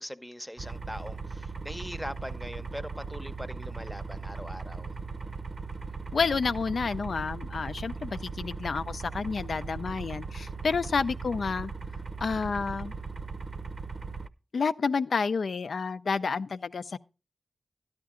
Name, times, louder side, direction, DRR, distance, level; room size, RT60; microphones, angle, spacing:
voice 1, 0.0-4.9, equal, 5° left, 0.7 m, -41 dB
sound 1, 0.6-14.3, right 4 dB, 60° right, 0.7 m, -38 dB
voice 2, 6.1-11.7 12.2-12.9 14.5-17.0, left 5 dB, 80° left, 0.5 m, -30 dB
12.5 x 10.5 x 3.7 m
wide cardioid pair, 80°, 0 cm